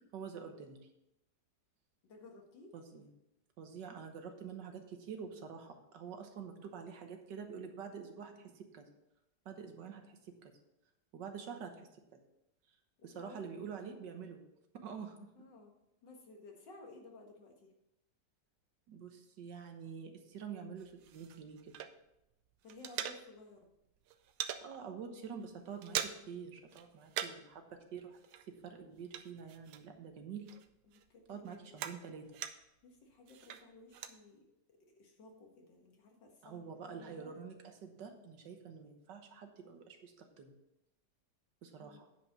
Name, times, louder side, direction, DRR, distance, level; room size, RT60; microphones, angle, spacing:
voice 1, 0.1-0.8 2.7-3.1 3.6-8.9 9.4-10.5 11.1-11.7 13.0-14.4 14.7-15.2 18.9-21.7 24.6-28.2 28.5-30.4 31.3-32.2 36.4-40.5 41.6-42.1, right 6 dB, 75° right, 5 dB, 1.7 m, -47 dB
voice 2, 2.0-2.7 13.0-13.5 15.4-15.7 16.0-17.7 22.6-23.7 30.9-31.8 32.8-34.5 34.8-37.3 41.8-42.0, left 2 dB, 80° left, 2 dB, 2.2 m, -56 dB
sound 1, 20.8-22.3 22.5-23.6 23.9-24.7 25.1-25.3 25.5-26.4 26.7-27.5 27.8-30.1 30.5-32.8 33.3-34.2, right 10 dB, 90° right, 1.3 m, -43 dB
9.1 x 5.3 x 6.0 m, 0.87 s
omnidirectional pair, 1.9 m